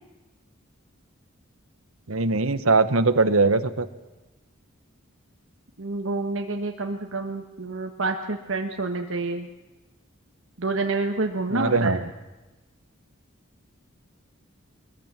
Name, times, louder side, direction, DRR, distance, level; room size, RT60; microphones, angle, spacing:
voice 1, 2.1-3.9 11.5-12.1, right 3 dB, 90° right, 12 dB, 1.3 m, -21 dB
voice 2, 5.8-9.5 10.6-12.0, right 3 dB, 70° right, 3 dB, 1.5 m, -28 dB
23.0 x 21.0 x 7.6 m, 1.1 s
head